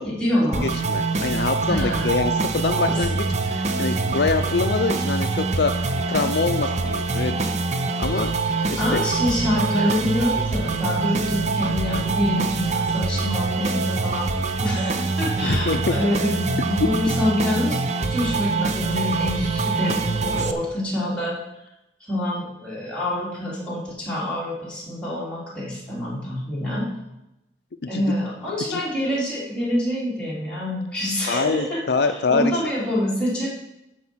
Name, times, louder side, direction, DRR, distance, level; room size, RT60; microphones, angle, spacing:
voice 1, 0.0-0.7 1.7-2.1 2.8-3.3 8.6-17.8 18.1-21.4 22.1-26.9 27.9-33.5, left 1 dB, 5° left, -8 dB, 3.5 m, -26 dB
sound 1, 0.5-20.5, right 3 dB, 40° right, 0.7 m, -24 dB
voice 2, 0.6-7.5 8.0-8.3 8.7-9.0 15.4-15.9 27.9-28.0 28.7-28.8 31.3-32.5, left 4 dB, 65° left, 7 dB, 0.5 m, -25 dB
13.0 x 5.0 x 6.2 m, 0.91 s
head